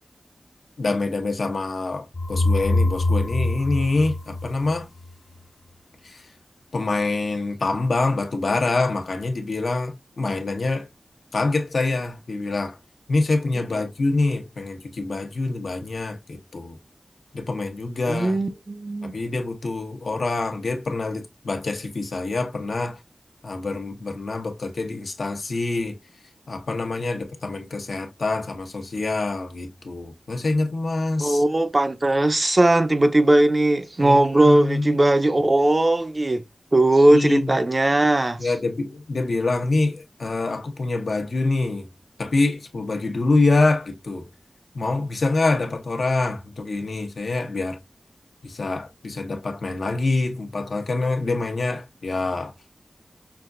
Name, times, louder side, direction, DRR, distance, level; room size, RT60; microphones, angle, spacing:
voice 1, 0.8-4.9 6.0-6.2 6.7-10.9 11.3-12.8 13.1-16.8 17.3-18.4 19.0-23.0 23.4-25.9 26.5-31.4 34.0-35.0 37.1-37.5 38.4-41.9 42.2-44.3 44.7-47.8 48.4-52.5, left 3 dB, 80° left, 0.9 m, -25 dB
sound 1, 2.1-5.0, left 2 dB, 40° left, 0.6 m, -23 dB
voice 2, 18.1-19.2 31.2-36.4 36.7-38.5, right 1 dB, 35° right, 0.6 m, -19 dB
5.9 x 2.3 x 2.5 m
wide cardioid pair, 75°, 0 cm